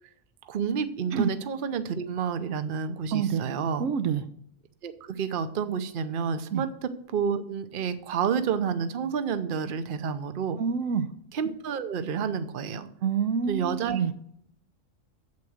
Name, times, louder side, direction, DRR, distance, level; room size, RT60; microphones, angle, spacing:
voice 1, 0.5-3.9 4.8-10.6 11.3-12.9 13.5-14.1, right 6 dB, 45° right, 11 dB, 0.8 m, -30 dB
voice 2, 3.1-3.4 3.8-4.2 6.5-6.6 10.6-11.1 13.0-14.1, right 7 dB, 75° right, 11 dB, 1.0 m, -27 dB
8.5 x 7.7 x 6.2 m, 0.67 s
omnidirectional pair, 1.4 m